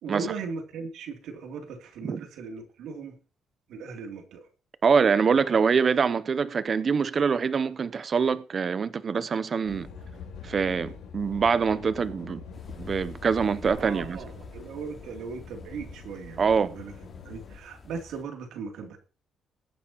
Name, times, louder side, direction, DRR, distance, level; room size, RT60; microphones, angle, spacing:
voice 1, 0.0-3.2 3.7-4.5 13.8-19.0, right 5 dB, 85° right, 3.0 m, -38 dB
voice 2, 4.8-9.9 10.4-12.4 12.8-14.2 16.4-16.8, right 5 dB, 45° right, 0.7 m, -24 dB
sound 1, 9.6-17.6, left 6 dB, 90° left, 4.2 m, -44 dB
sound 2, 12.5-18.2, left 3 dB, 35° left, 3.7 m, -48 dB
21.0 x 9.2 x 3.0 m
cardioid pair, 90°, 0 cm